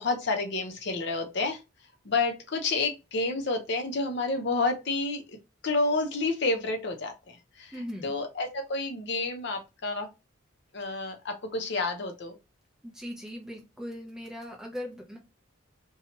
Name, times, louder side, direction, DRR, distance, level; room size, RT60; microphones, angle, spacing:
voice 1, 0.0-1.6 2.0-5.2 5.6-7.1 7.6-7.7 8.0-10.1 10.7-12.3, left 3 dB, 55° left, 5 dB, 0.6 m, -29 dB
voice 2, 7.7-8.1 10.9-11.0 12.8-15.2, equal, 5° right, 0 dB, 0.6 m, -39 dB
2.8 x 2.3 x 2.9 m, 0.25 s
head